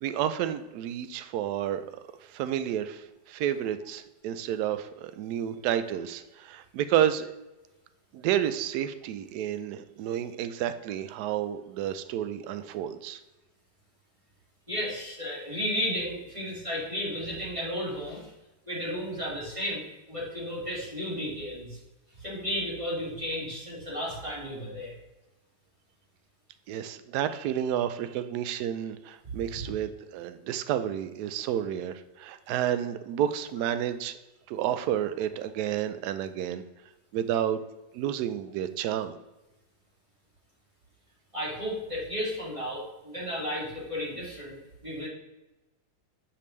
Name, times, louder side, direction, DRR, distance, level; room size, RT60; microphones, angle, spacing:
voice 1, 0.0-1.8 2.3-7.3 8.1-13.2 26.7-34.2 34.5-36.6 37.1-37.6 37.9-39.1, right 10 dB, 70° right, 11 dB, 1.0 m, -30 dB
voice 2, 14.7-18.3 18.7-21.8 22.1-24.9 41.3-45.1, equal, 15° right, -7 dB, 2.4 m, -33 dB
8.5 x 5.2 x 3.2 m, 1.0 s
omnidirectional pair, 2.0 m